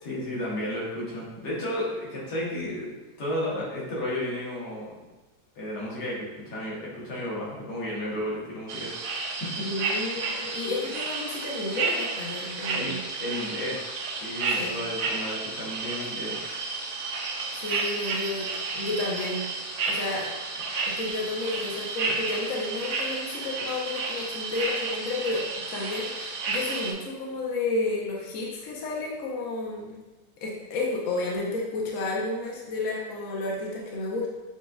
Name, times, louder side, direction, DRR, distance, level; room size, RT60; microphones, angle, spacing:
voice 1, 0.0-5.1 5.6-8.9 9.6-9.7 12.7-12.9 13.2-16.5, left 1 dB, 85° left, -6 dB, 1.8 m, -33 dB
sound 1, 8.7-26.9, right 3 dB, 65° right, 1.0 m, -32 dB
voice 2, 9.6-13.0 14.5-14.7 17.5-19.4 19.9-20.3 20.9-25.4 25.7-30.0 30.4-34.3, left 2 dB, 60° left, -3 dB, 1.0 m, -31 dB
6.9 x 2.5 x 2.3 m, 1.2 s
omnidirectional pair, 1.7 m